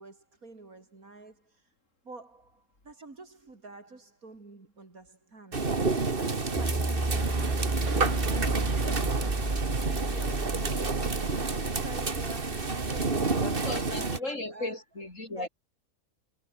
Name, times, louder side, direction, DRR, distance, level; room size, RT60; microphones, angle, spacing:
voice 1, 0.0-1.7 2.0-5.7 6.2-9.5 9.9-11.4 11.7-14.8 15.3-15.5, right 3 dB, 75° right, 4.1 m, -48 dB
Thunder Rain Backyard, 5.5-14.2, right 3 dB, 40° right, 2.2 m, -30 dB
sound 1, 6.6-12.8, right 2 dB, 10° right, 0.9 m, -32 dB
sound 2, 7.1-14.1, right 5 dB, 55° right, 2.0 m, -42 dB
voice 2, 13.4-15.5, left 2 dB, 60° left, 5.9 m, -36 dB
omnidirectional pair, 1.5 m